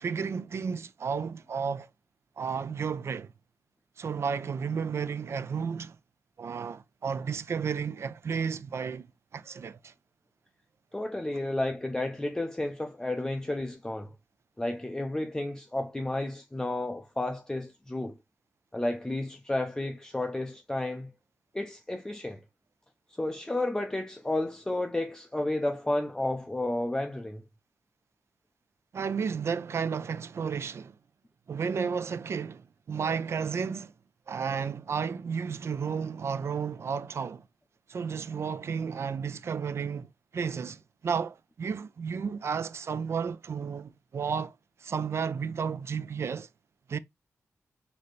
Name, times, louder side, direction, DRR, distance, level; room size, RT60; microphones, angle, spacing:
voice 1, 0.0-1.9 2.4-3.3 4.0-6.0 6.4-9.1 9.3-9.9 28.9-30.9 31.5-33.9 34.3-37.4 37.9-44.5 44.8-46.5 46.9-47.0, right 6 dB, 55° right, 0.3 m, -32 dB
voice 2, 10.9-14.1 14.6-18.2 18.7-21.1 21.5-22.4 23.2-27.4, left 1 dB, 10° left, 0.4 m, -32 dB
4.1 x 2.7 x 3.1 m
wide cardioid pair, 100°, 5 cm